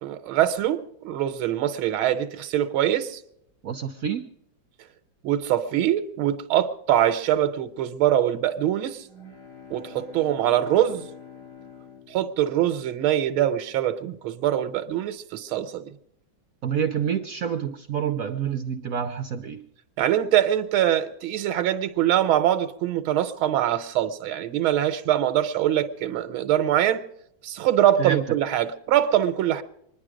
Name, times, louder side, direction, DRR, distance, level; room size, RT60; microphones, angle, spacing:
voice 1, 0.0-3.2 5.2-9.0 9.7-11.0 12.1-15.9 20.0-27.0 27.4-29.6, right 11 dB, 90° right, 1.6 m, -23 dB
voice 2, 3.6-4.2 16.6-19.6 28.0-28.4, right 8 dB, 65° right, 0.9 m, -27 dB
sound 1, 9.0-13.1, left 6 dB, 55° left, 2.6 m, -46 dB
25.0 x 10.5 x 4.9 m
omnidirectional pair, 2.2 m